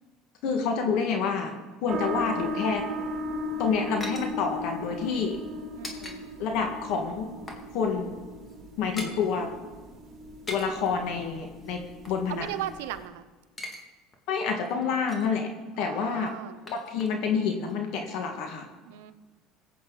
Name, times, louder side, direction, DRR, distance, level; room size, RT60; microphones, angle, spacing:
voice 1, 0.4-1.5 1.8-2.8 3.6-5.4 6.4-7.3 7.7-8.1 8.8-9.5 10.5-11.8 12.1-12.5 14.3-15.5 15.8-16.3 16.7-18.7, left 5 dB, 70° left, 3 dB, 1.8 m, -28 dB
sound 1, 1.9-13.0, equal, 40° right, 2.5 m, -37 dB
sound 2, 3.2-6.2 6.5-6.6 7.0-7.7 8.0-8.1 8.4-9.2 10.2-10.9 11.6-13.1 13.4-13.8 14.1-14.2 14.6-15.4 16.1-17.4 17.6-17.7, left 2 dB, 20° left, 2.3 m, -43 dB
voice 2, 5.8-6.3 12.3-13.3 15.7-16.6 18.8-19.1, right 12 dB, 90° right, 10 dB, 0.8 m, -37 dB
20.0 x 8.4 x 4.0 m, 1.4 s
supercardioid pair, 110°, 0 cm